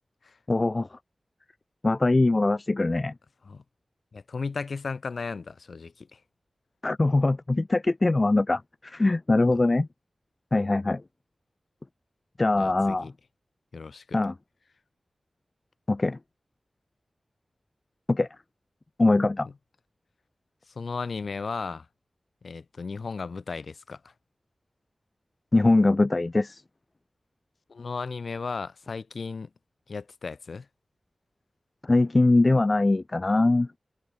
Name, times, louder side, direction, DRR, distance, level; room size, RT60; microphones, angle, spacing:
voice 1, 0.5-1.0 1.8-3.1 6.8-9.9 10.5-11.0 12.4-13.1 14.1-14.3 15.9-16.2 18.1-18.3 19.0-19.5 25.5-26.6 31.8-33.7, left 2 dB, 35° left, 0.3 m, -22 dB
voice 2, 4.1-6.2 12.6-13.1 13.7-14.2 20.7-21.9 22.4-24.0 27.7-29.5 29.9-30.7, left 4 dB, 70° left, 1.0 m, -35 dB
wide cardioid pair, 95°, 0 cm